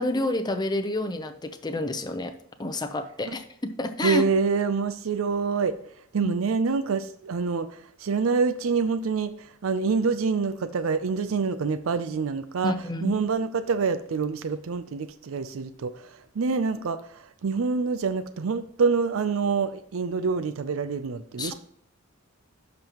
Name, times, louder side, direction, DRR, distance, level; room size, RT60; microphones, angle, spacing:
voice 1, 0.0-2.3 2.6-3.4 3.8-4.2 6.2-6.3 12.6-13.2 21.4-21.5, left 1 dB, 20° left, 7 dB, 0.6 m, -28 dB
voice 2, 4.0-5.8 6.1-12.7 13.0-16.0 16.4-21.5, right 5 dB, 75° right, 13 dB, 0.5 m, -26 dB
11.5 x 5.3 x 2.9 m, 0.66 s
head